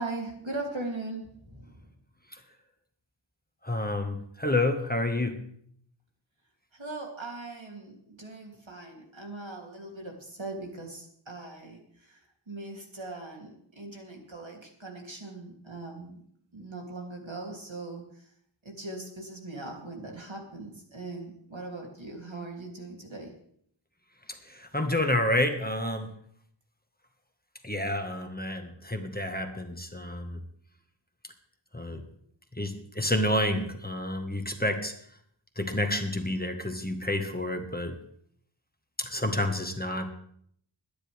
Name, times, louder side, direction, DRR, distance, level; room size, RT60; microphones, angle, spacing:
voice 1, 0.0-1.9 6.7-12.2 12.5-16.2 16.5-18.3 18.6-23.3, right 2 dB, 75° right, 0 dB, 3.1 m, -40 dB
voice 2, 3.6-5.4 24.5-26.1 27.6-30.4 31.7-32.0 32.5-34.9 35.6-38.0 39.0-40.1, left 1 dB, 20° left, 5 dB, 1.6 m, -29 dB
22.0 x 10.5 x 3.5 m, 0.66 s
wide cardioid pair, 45°, 47 cm